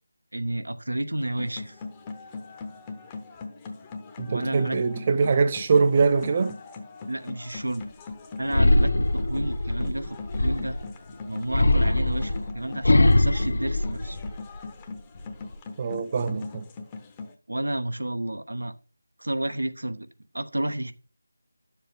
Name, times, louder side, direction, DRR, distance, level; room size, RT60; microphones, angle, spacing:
voice 1, 0.3-1.8 4.3-4.8 7.1-7.9 8.4-10.8 11.3-14.2 17.5-18.7 19.2-20.1 20.3-20.9, right 1 dB, 90° right, 0.9 m, -31 dB
sound 1, 1.2-17.3, left 4 dB, 15° left, 0.9 m, -41 dB
voice 2, 4.2-6.5 15.8-16.6, right 4 dB, 30° right, 0.6 m, -23 dB
sound 2, 8.5-10.9 11.5-14.6 15.0-15.5, left 2 dB, 65° left, 0.8 m, -22 dB
10.5 x 7.2 x 3.6 m
figure-of-eight pair, 165°, 0 cm